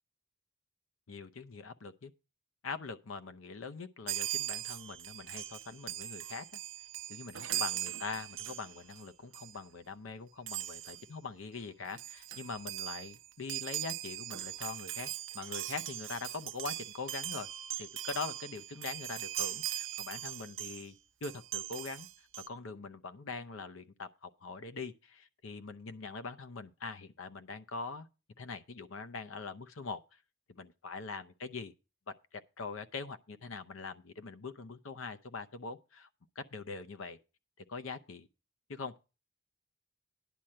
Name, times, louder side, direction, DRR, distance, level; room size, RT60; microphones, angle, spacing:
voice 1, 1.1-2.1 2.6-6.4 7.1-17.5 17.8-20.9 21.2-22.1 22.5-28.1 28.4-30.0 30.5-31.7 32.1-36.1 36.4-37.2 37.7-38.3 38.7-39.0, left 4 dB, 80° left, 0.7 m, -43 dB
Chime, 4.1-9.0 9.3-9.6 10.5-11.1 11.6-11.7 11.9-20.9 21.2-22.5, right 13 dB, 75° right, 0.6 m, -40 dB
10.5 x 4.4 x 7.6 m
head